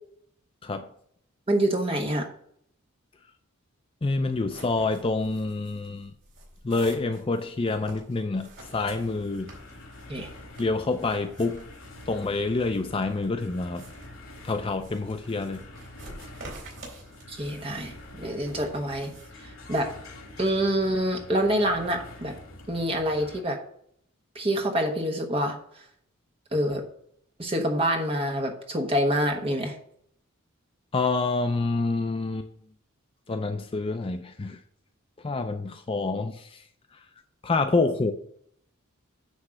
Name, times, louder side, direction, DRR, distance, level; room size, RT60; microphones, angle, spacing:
voice 1, 1.5-2.3 10.1-10.3 17.3-19.1 19.4-19.9 20.4-22.3 22.7-23.6 24.3-25.6 26.5-26.8 27.4-29.7, equal, 25° right, 1.2 m, -26 dB
voice 2, 4.0-6.1 6.6-9.5 10.6-11.6 12.1-13.8 14.4-15.6 30.9-32.5 33.3-34.6 35.2-36.6 36.9-37.0 37.4-38.1, left 3 dB, 25° left, 0.4 m, -27 dB
sound 1, 4.1-19.3, right 2 dB, 90° right, 3.7 m, -49 dB
sound 2, 8.6-23.4, left 1 dB, 80° left, 2.1 m, -46 dB
9.7 x 3.2 x 6.2 m
head